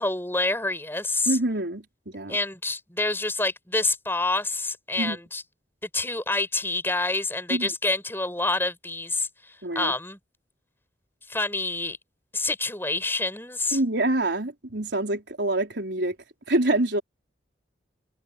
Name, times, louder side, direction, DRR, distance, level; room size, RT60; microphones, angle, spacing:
voice 1, 0.0-1.4 2.3-5.4 5.8-10.2 11.3-12.0 12.3-13.8, left 2 dB, 15° left, 6.4 m, -27 dB
voice 2, 1.3-2.4 5.0-5.2 7.5-7.7 9.6-9.9 13.7-16.2 16.5-17.0, right 1 dB, 75° right, 4.3 m, -26 dB
head